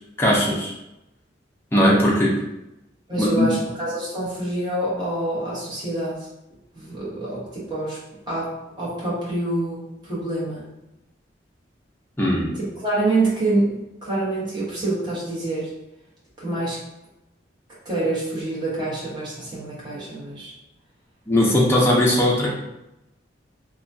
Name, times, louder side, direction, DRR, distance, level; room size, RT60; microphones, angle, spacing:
voice 1, 0.2-0.7 1.7-2.3 3.2-3.5 12.2-12.5 21.3-22.5, left 1 dB, 15° left, -4 dB, 0.5 m, -18 dB
voice 2, 3.1-6.3 6.7-8.0 8.3-8.5 8.8-10.7 12.5-13.7 14.0-15.7 16.4-16.8 17.8-20.5, right 2 dB, 25° right, -8 dB, 1.1 m, -26 dB
3.0 x 2.2 x 2.6 m, 0.91 s
head